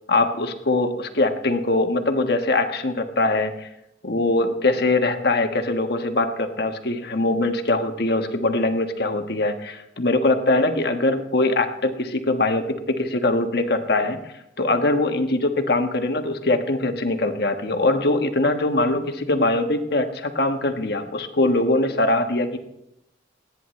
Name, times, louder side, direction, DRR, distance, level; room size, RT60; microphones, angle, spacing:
voice 1, 0.1-3.7 4.0-14.2 14.6-22.6, left 2 dB, 60° left, 5 dB, 1.3 m, -22 dB
28.5 x 9.9 x 3.2 m, 0.83 s
head